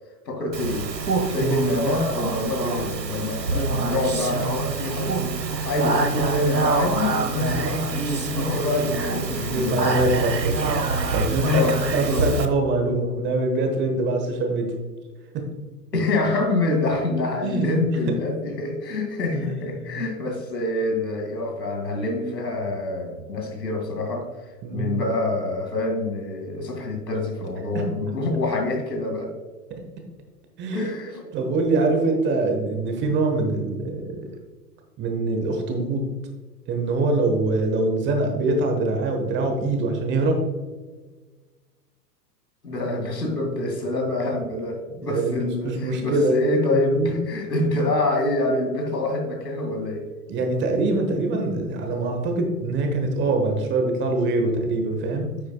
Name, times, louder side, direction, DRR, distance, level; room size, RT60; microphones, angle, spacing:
voice 1, 0.3-0.9 1.3-5.4 5.6-10.0 11.4-12.3 15.9-24.3 24.7-29.3 30.7-31.3 42.6-50.1, left 2 dB, 80° left, 3 dB, 2.4 m, -26 dB
Speech, 0.5-12.5, right 3 dB, 85° right, 1.1 m, -26 dB
voice 2, 9.5-14.7 15.3-15.4 17.4-17.8 18.1-18.2 19.3-20.0 24.6-25.0 27.7-27.9 29.7-29.8 30.6-34.2 35.0-36.0 36.7-40.4 45.0-46.4 46.7-47.1 50.3-55.3, right 2 dB, 25° right, 4 dB, 1.1 m, -24 dB
9.5 x 7.7 x 2.3 m, 1.3 s
figure-of-eight pair, 110°, 49 cm